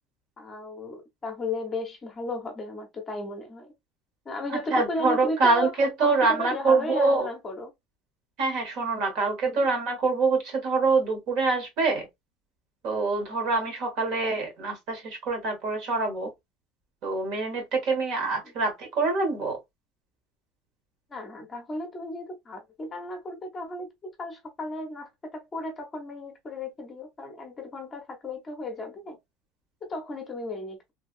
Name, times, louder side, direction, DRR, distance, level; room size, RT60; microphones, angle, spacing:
voice 1, 0.4-3.7 4.3-7.7 9.4-9.7 14.3-14.4 21.1-29.2 29.9-30.8, left 2 dB, 20° left, 0.7 m, -35 dB
voice 2, 4.5-7.3 8.4-12.1 12.8-16.3 17.0-19.6, right 3 dB, 55° right, 1.3 m, -25 dB
3.3 x 2.2 x 2.5 m
cardioid pair, 155°, 0 cm